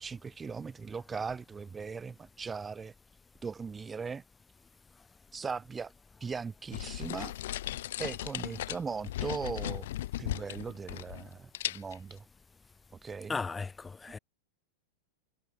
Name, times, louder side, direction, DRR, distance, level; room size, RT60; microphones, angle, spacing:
voice 1, 0.0-2.9 3.4-4.2 5.3-5.9 6.2-7.3 8.0-9.9 10.2-12.2 13.0-13.4, right 5 dB, 15° right, 3.1 m, -39 dB
sound 1, 6.7-11.3 11.5-12.1, left 14 dB, 55° left, 2.6 m, -37 dB
voice 2, 13.3-14.2, left 4 dB, 15° left, 4.3 m, -36 dB
figure-of-eight pair, 90°, 0 cm